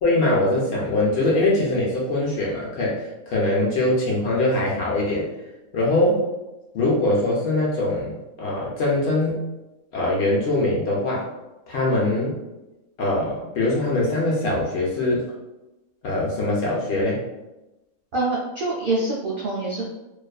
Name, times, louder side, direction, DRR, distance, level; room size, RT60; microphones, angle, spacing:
voice 1, 0.0-5.3 5.7-6.2 6.7-9.4 9.9-11.3 11.7-12.4 13.0-15.2 16.0-17.2, left 2 dB, 65° left, -4 dB, 0.7 m, -22 dB
voice 2, 18.1-19.8, right 2 dB, 85° right, -5 dB, 0.4 m, -25 dB
2.4 x 2.3 x 2.3 m, 1.0 s
omnidirectional pair, 1.5 m